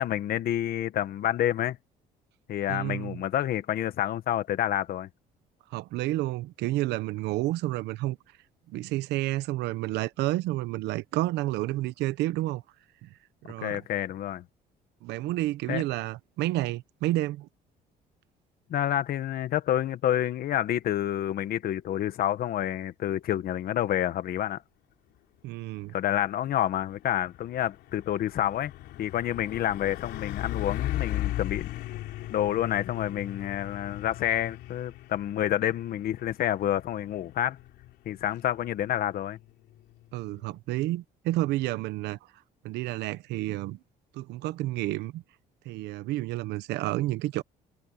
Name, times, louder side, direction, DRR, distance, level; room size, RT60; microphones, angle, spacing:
voice 1, 0.0-1.8 2.5-5.1 13.6-14.4 15.7-15.8 18.7-24.6 25.9-28.7 29.0-31.8 32.3-37.6 38.0-39.4, left 11 dB, 60° left, 1.6 m, -28 dB
voice 2, 2.7-3.2 5.7-8.2 8.7-12.6 13.0-13.1 13.4-13.8 15.0-17.5 25.4-25.9 40.1-42.2 42.6-43.8 44.1-45.2 45.6-47.4, right 17 dB, 85° right, 0.9 m, -30 dB
Truck, 26.3-40.6, left 15 dB, 80° left, 3.2 m, -38 dB
cardioid pair, 110°, 17 cm